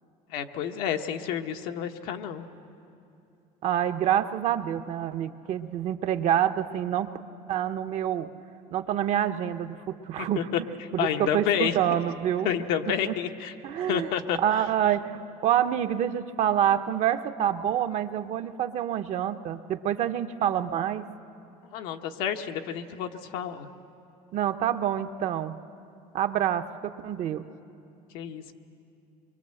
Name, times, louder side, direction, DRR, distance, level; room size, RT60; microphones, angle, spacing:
voice 1, 0.3-2.5 10.2-10.6 11.0-11.8 12.4-14.6 21.7-23.7 28.1-28.5, left 9 dB, 85° left, 5 dB, 1.2 m, -30 dB
voice 2, 3.6-7.1 7.5-8.3 8.7-10.5 10.9-12.5 12.9-13.1 13.6-14.1 14.4-21.1 24.3-25.5 26.1-27.5, right 10 dB, 50° right, 9 dB, 0.8 m, -27 dB
24.0 x 23.0 x 7.7 m, 2.7 s
cardioid pair, 140°, 15 cm